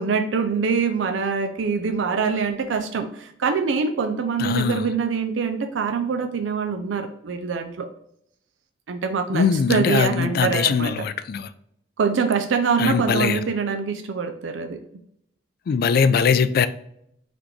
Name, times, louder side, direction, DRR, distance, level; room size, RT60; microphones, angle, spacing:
voice 1, 0.0-7.9 8.9-10.9 12.0-14.8, right 5 dB, 80° right, 0.4 m, -24 dB
voice 2, 4.4-4.9 9.3-11.5 12.8-13.4 15.7-16.7, left 6 dB, 55° left, 0.3 m, -21 dB
4.1 x 2.9 x 3.2 m
head